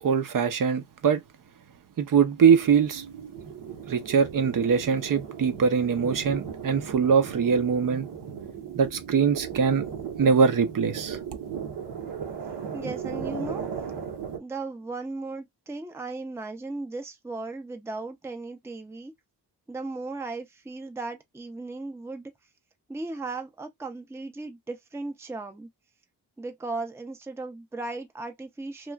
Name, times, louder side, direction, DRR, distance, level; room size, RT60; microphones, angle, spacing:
voice 1, 0.0-1.2 2.0-3.0 3.9-8.2 8.8-9.9 10.2-11.2, right 6 dB, 50° right, 0.6 m, -22 dB
sound 1, 2.4-14.4, right 7 dB, 80° right, 1.0 m, -37 dB
voice 2, 12.7-13.6 14.4-19.1 19.7-22.3 22.9-25.7 26.4-28.9, right 3 dB, 5° right, 0.5 m, -36 dB
3.0 x 2.3 x 2.3 m
cardioid pair, 100°, 41 cm